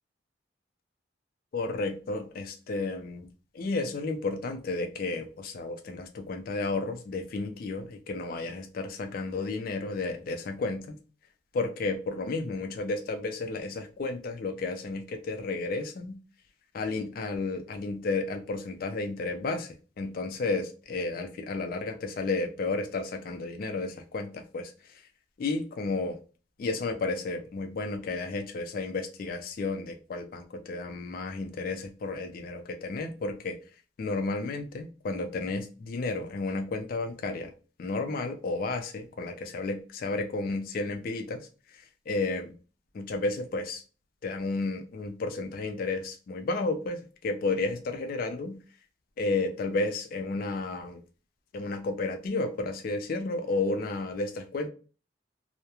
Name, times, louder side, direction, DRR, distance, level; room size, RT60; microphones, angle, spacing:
voice 1, 1.5-3.3 3.5-11.0 11.5-16.2 16.7-24.7 25.4-26.2 26.6-33.6 34.0-37.5 37.8-42.5 42.9-43.8 44.2-48.6 49.2-51.0 51.5-54.7, left 3 dB, 50° left, 0.3 m, -32 dB
2.3 x 2.0 x 2.8 m
head